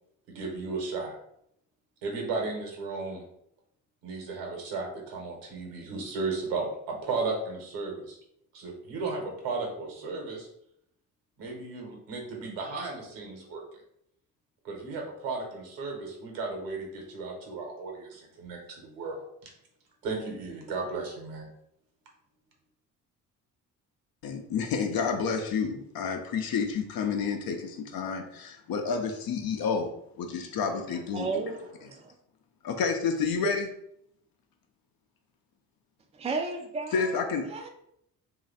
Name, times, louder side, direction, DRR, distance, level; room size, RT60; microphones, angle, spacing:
voice 1, 0.3-1.2 2.0-3.3 4.0-8.2 8.5-10.5 11.4-13.6 14.6-19.5 20.0-21.5, right 3 dB, 65° right, 0 dB, 1.3 m, -35 dB
voice 2, 24.2-29.9 30.2-31.3 32.6-33.7 36.9-37.5, left 5 dB, 45° left, 4 dB, 0.7 m, -29 dB
voice 3, 30.7-32.1 36.1-37.2 37.5-37.7, right 4 dB, 15° right, 2 dB, 0.6 m, -34 dB
3.1 x 2.7 x 4.0 m, 0.74 s
figure-of-eight pair, 45°, 48 cm